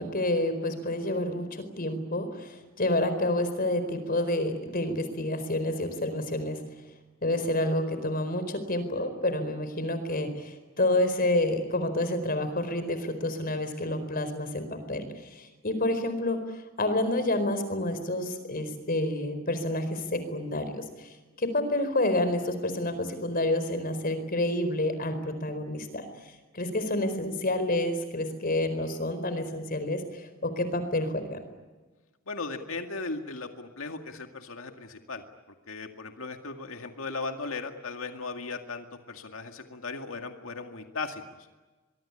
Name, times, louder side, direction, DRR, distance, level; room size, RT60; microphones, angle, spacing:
voice 1, 0.0-6.6 7.2-21.1 21.4-31.4, left 1 dB, 45° left, 10 dB, 4.5 m, -29 dB
voice 2, 32.3-35.2 35.7-41.2, left 3 dB, 80° left, 5 dB, 2.1 m, -37 dB
24.0 x 23.0 x 9.9 m, 1.2 s
head